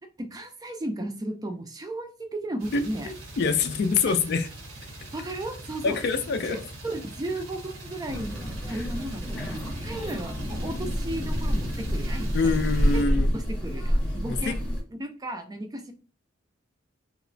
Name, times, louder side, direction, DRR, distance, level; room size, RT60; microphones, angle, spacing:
voice 1, 0.2-3.1 4.1-4.2 5.1-6.0 6.5-9.5 9.8-12.6 12.9-14.6 14.9-15.9, right 1 dB, 20° right, 0.4 m, -35 dB
sound 1, 2.6-13.0, right 1 dB, 85° right, 1.0 m, -41 dB
voice 2, 2.7-4.5 5.8-6.6 9.4-9.5 12.3-13.3 14.3-14.6, left 4 dB, 55° left, 0.3 m, -25 dB
sound 2, 8.1-14.8, equal, 5° left, 0.7 m, -28 dB
2.9 x 2.1 x 2.5 m
head